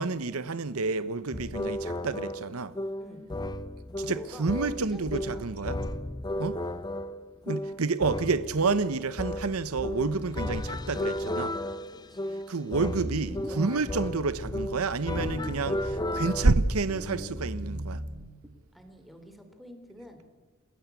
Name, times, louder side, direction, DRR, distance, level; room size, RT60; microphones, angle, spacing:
voice 1, 0.0-2.7 4.0-5.8 6.4-6.5 7.5-11.5 12.5-18.0, right 3 dB, 75° right, 0.9 m, -29 dB
sound 1, 1.3-16.5, left 1 dB, 20° left, 0.7 m, -34 dB
voice 2, 4.1-5.6 6.4-6.5 11.9-12.4 18.7-20.2, equal, ahead, 3.1 m, -48 dB
sound 2, 12.7-14.7 15.1-16.5 16.9-18.5, equal, 15° right, 2.3 m, -38 dB
28.0 x 15.5 x 8.3 m
head